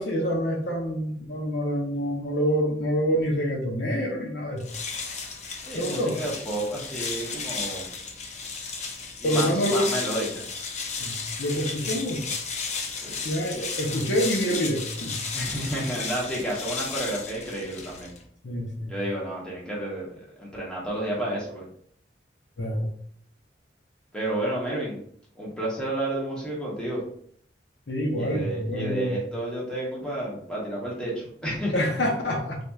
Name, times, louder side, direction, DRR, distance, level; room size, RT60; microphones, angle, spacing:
voice 1, 0.0-4.6 5.7-6.2 9.2-9.9 11.0-12.3 13.2-15.2 18.4-18.9 22.6-22.9 27.9-29.2 31.7-32.6, equal, 75° left, 0 dB, 0.8 m, -26 dB
sound 1, 4.6-18.3, left 4 dB, 40° left, 0.5 m, -34 dB
voice 2, 5.7-7.9 9.2-10.4 13.0-13.2 13.5-13.6 15.3-18.1 18.9-21.6 24.1-25.0 25.3-27.0 28.2-31.7, right 1 dB, 5° left, -6 dB, 1.2 m, -31 dB
4.0 x 3.1 x 2.4 m, 0.62 s
head